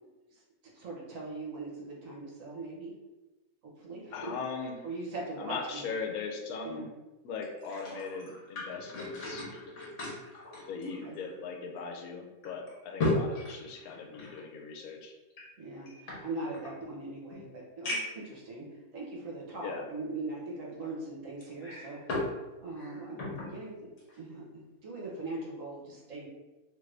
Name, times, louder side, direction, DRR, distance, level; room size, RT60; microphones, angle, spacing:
voice 1, 0.7-2.9 3.6-4.3 4.8-5.8 6.6-6.9 10.8-11.2 15.6-22.3 22.6-26.3, right 2 dB, 65° right, -3 dB, 1.2 m, -41 dB
voice 2, 4.1-4.8 5.4-6.9 7.2-9.5 10.7-15.2 19.6-19.9, left 5 dB, 80° left, 2 dB, 1.0 m, -39 dB
sound 1, 7.4-11.4 11.8-11.9 12.4-14.4 15.3-16.7 17.3-17.4 17.8-18.3 19.0-19.1 21.4-22.4 22.7-23.5 24.0-24.2, left 2 dB, 60° left, 1.2 m, -36 dB
2.9 x 2.5 x 3.2 m, 1.1 s
omnidirectional pair, 1.5 m